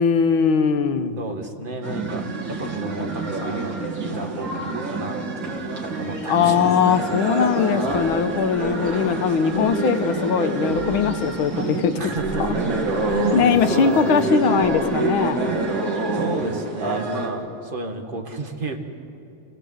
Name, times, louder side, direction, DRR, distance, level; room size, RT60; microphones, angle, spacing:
voice 1, 0.0-1.2 6.3-12.1 13.3-15.6, left 6 dB, 75° left, 9 dB, 1.7 m, -20 dB
voice 2, 1.2-7.0 7.7-8.2 12.0-15.0 16.1-18.8, right 2 dB, 25° right, 3 dB, 1.6 m, -32 dB
sound 1, 1.8-17.3, right 2 dB, 65° right, 3.3 m, -26 dB
sound 2, 5.2-14.9, left 2 dB, 35° left, 5.5 m, -44 dB
29.0 x 16.5 x 7.9 m, 2.7 s
omnidirectional pair, 2.3 m